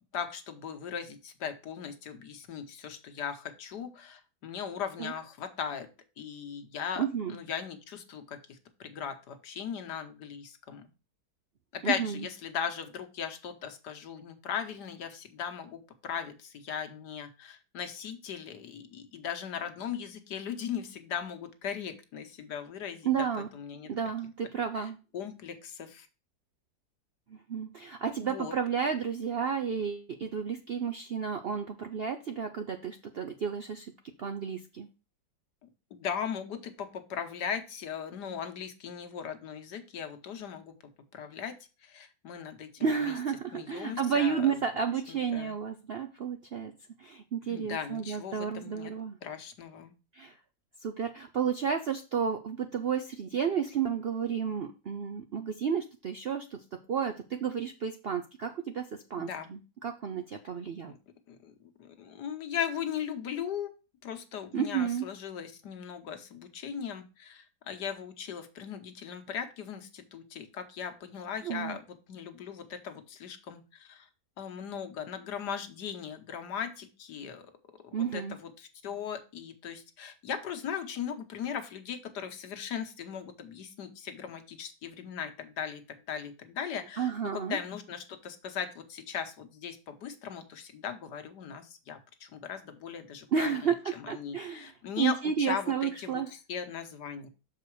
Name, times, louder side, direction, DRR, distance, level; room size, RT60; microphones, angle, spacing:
voice 1, 0.1-5.9 6.2-10.9 11.7-23.2 23.5-23.9 24.7-26.1 28.2-28.5 33.4-33.5 35.6-40.7 41.1-41.6 41.8-43.1 43.5-44.6 45.1-45.5 47.5-48.9 49.2-49.9 59.2-59.5 60.9-61.0 61.3-63.7 64.0-74.1 74.4-77.5 77.9-97.3, left 7 dB, 75° left, 7 dB, 1.6 m, -38 dB
voice 2, 7.0-7.4 11.8-12.2 23.0-23.5 23.9-25.0 27.3-33.9 34.2-34.9 42.8-46.7 47.0-49.2 50.1-50.4 50.8-60.9 64.5-65.1 71.4-71.8 77.9-78.4 87.0-87.6 93.3-94.7 95.0-96.3, right 7 dB, 65° right, 6 dB, 0.6 m, -32 dB
6.7 x 4.8 x 4.6 m, 0.31 s
omnidirectional pair, 1.8 m